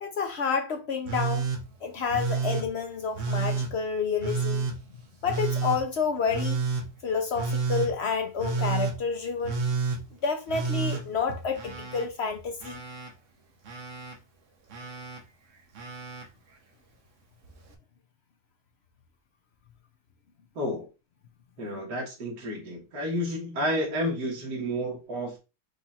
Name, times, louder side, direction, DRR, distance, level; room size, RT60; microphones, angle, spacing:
voice 1, 0.0-1.5 1.8-4.6 5.2-6.6 7.0-9.6 10.2-12.8, left 5 dB, 65° left, 0.6 m, -29 dB
Telephone, 1.1-1.6 2.1-2.7 3.1-3.7 4.2-4.8 5.2-5.8 6.3-6.8 7.3-7.9 8.4-8.9 9.4-10.0 10.5-12.1 12.3-13.1 13.6-14.1 14.7-15.2 15.7-16.2 17.4-17.5, right 4 dB, 50° right, 1.1 m, -30 dB
voice 2, 20.6-20.9 21.6-25.4, equal, 70° right, 2.1 m, -31 dB
5.0 x 2.4 x 4.1 m
omnidirectional pair, 1.9 m